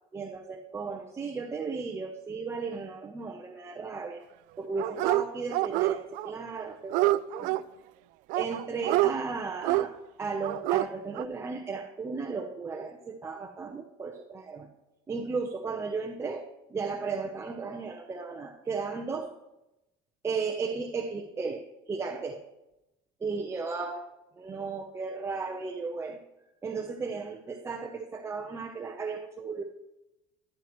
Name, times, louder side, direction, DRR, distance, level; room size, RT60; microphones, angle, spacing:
voice 1, 0.1-4.2 4.6-7.6 8.3-14.7 15.1-19.3 20.2-22.4 23.2-26.2 26.6-29.6, right 4 dB, 20° right, 1 dB, 0.7 m, -35 dB
Dog, 4.8-5.2 5.5-6.3 6.6-7.6 8.3-9.1 9.6-9.9 10.4-10.9 11.2-11.3, right 16 dB, 65° right, 0.4 m, -26 dB
13.5 x 11.0 x 3.1 m, 0.93 s
cardioid pair, 150°, 15 cm